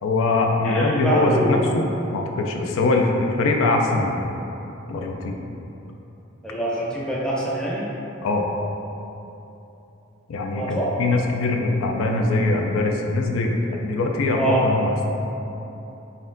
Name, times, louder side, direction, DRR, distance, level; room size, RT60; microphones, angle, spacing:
voice 1, 0.0-1.8 2.1-4.3 4.9-5.4 8.2-8.4 10.3-14.9, left 2 dB, 85° left, 2 dB, 0.4 m, -22 dB
voice 2, 0.6-1.6 6.4-7.9 10.5-10.9 14.4-14.6, right 1 dB, 5° left, -6 dB, 0.5 m, -25 dB
4.1 x 3.5 x 2.6 m, 3.0 s
head